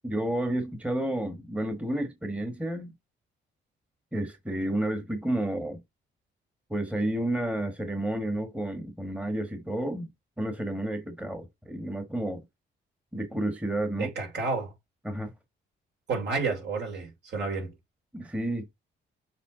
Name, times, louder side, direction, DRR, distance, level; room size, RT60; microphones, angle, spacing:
voice 1, 0.0-2.9 4.1-5.8 6.7-10.1 10.4-12.4 13.1-14.1 15.0-15.3 18.1-18.7, right 1 dB, 5° right, 1.3 m, -31 dB
voice 2, 13.9-14.7 16.1-17.7, right 4 dB, 60° right, 3.1 m, -30 dB
7.4 x 3.4 x 3.8 m
cardioid pair, 90°, 20 cm